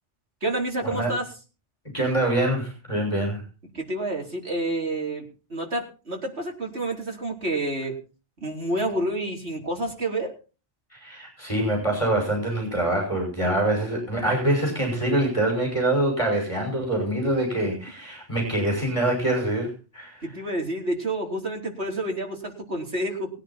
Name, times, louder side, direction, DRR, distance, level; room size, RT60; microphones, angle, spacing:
voice 1, 0.4-1.3 3.7-7.9 8.4-10.3 20.2-23.3, right 1 dB, 65° right, 1 dB, 4.5 m, -29 dB
voice 2, 1.9-3.4 10.9-20.3, right 1 dB, 25° left, 0 dB, 6.0 m, -25 dB
21.5 x 9.9 x 4.4 m, 0.34 s
omnidirectional pair, 1.2 m